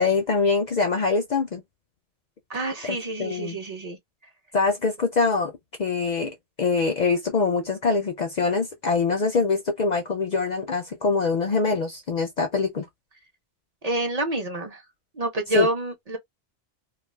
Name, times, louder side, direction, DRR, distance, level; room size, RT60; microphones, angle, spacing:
voice 1, 0.0-1.6 2.8-3.6 4.5-5.5 5.8-12.9 15.5-15.7, left 4 dB, 55° left, 0.5 m, -24 dB
voice 2, 2.5-4.0 13.8-14.8 15.2-16.2, right 1 dB, 40° right, 0.7 m, -28 dB
2.3 x 2.3 x 3.2 m
omnidirectional pair, 1.1 m